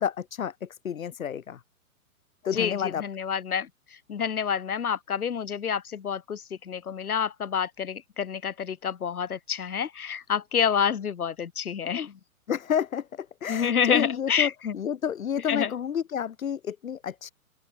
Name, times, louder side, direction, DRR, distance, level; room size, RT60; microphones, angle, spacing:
voice 1, 0.0-1.6 2.4-3.0 12.5-17.3, left 8 dB, 70° left, 1.4 m, -30 dB
voice 2, 2.5-3.7 4.1-12.1 13.5-14.7 15.5-15.7, left 7 dB, 85° left, 0.7 m, -28 dB
open air
figure-of-eight pair, 115°, 43 cm